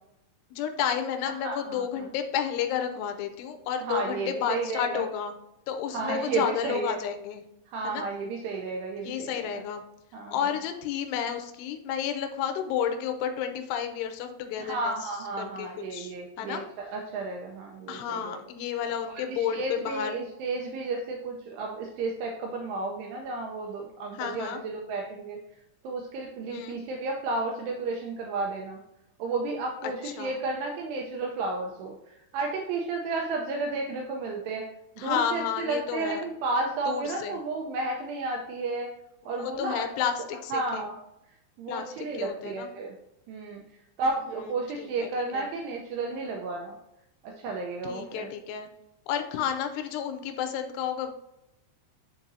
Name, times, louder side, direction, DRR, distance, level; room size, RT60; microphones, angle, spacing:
voice 1, 0.5-5.3 5.7-7.4 7.8-8.0 9.0-9.8 10.3-15.0 15.4-16.6 17.9-20.2 24.1-24.6 26.5-26.8 29.8-30.3 35.0-36.2 36.9-37.4 39.2-40.9 41.7-42.7 44.2-44.3 44.8-45.1 45.3-45.5 47.8-48.7 49.1-51.1, left 8 dB, 85° left, 6 dB, 2.5 m, -31 dB
voice 2, 1.4-2.0 3.8-5.0 5.9-7.0 7.7-9.6 10.1-10.4 14.6-18.4 19.1-25.4 25.8-28.8 29.2-34.7 35.0-38.9 39.3-39.9 40.5-40.9 41.6-42.9 43.3-43.6 44.0-46.8 47.2-48.3, right 3 dB, 80° right, 1 dB, 2.5 m, -32 dB
9.8 x 3.9 x 2.6 m, 0.87 s
omnidirectional pair, 5.3 m